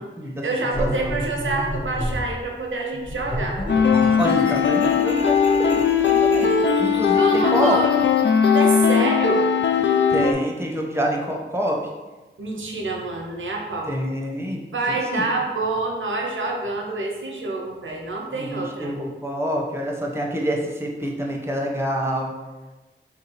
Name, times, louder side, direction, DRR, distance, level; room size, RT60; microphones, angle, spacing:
voice 1, 0.4-3.6 7.2-8.0 8.5-9.5 9.8-9.9 12.4-13.9 14.7-18.9, right 3 dB, 90° right, 1 dB, 0.7 m, -27 dB
sound 1, 0.7-2.3 3.0-8.6, equal, 25° left, 0.9 m, -31 dB
sound 2, 3.7-10.3, left 6 dB, 70° left, 0.4 m, -19 dB
voice 2, 4.2-6.5 6.8-7.8 10.1-11.8 13.9-14.6 14.9-15.3 18.3-22.3, equal, 15° right, -1 dB, 0.8 m, -26 dB
3.6 x 2.7 x 4.5 m, 1.2 s
cardioid pair, 45°, 20 cm